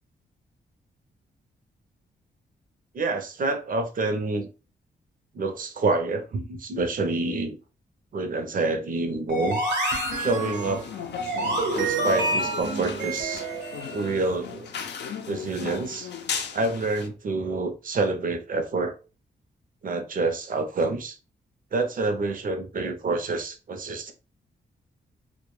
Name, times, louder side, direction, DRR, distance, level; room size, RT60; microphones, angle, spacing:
voice 1, 2.9-4.5 5.3-7.6 8.1-9.6 10.2-10.9 11.7-13.5 13.9-14.7 15.3-16.1 16.5-18.9 19.8-21.2 21.7-24.1, right 3 dB, 50° right, 0.6 m, -27 dB
sound 1, 9.3-14.2, right 2 dB, 80° right, 0.9 m, -28 dB
sound 2, 10.1-17.1, left 7 dB, 75° left, 0.5 m, -36 dB
2.2 x 2.1 x 3.1 m
cardioid pair, 95°, 18 cm